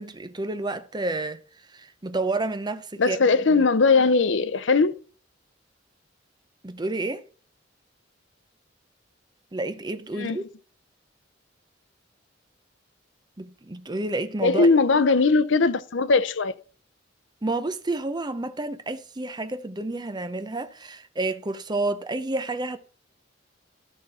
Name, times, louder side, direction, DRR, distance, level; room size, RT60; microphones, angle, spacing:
voice 1, 0.0-1.4 1.7-3.6 6.6-7.2 9.5-10.4 13.4-15.0 17.4-22.8, right 2 dB, 20° right, 0.7 m, -30 dB
voice 2, 3.0-4.9 10.2-10.4 14.4-16.5, left 4 dB, 70° left, 0.7 m, -20 dB
13.0 x 6.1 x 4.2 m
head